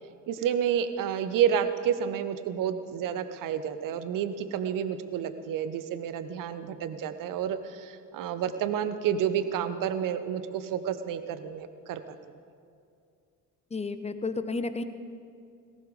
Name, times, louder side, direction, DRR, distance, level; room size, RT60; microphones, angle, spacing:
voice 1, 0.3-12.2, right 9 dB, 45° right, 12 dB, 1.1 m, -30 dB
voice 2, 13.7-14.8, left 3 dB, 15° left, 10 dB, 0.9 m, -32 dB
18.0 x 17.0 x 3.9 m, 2.4 s
figure-of-eight pair, 55°, 46 cm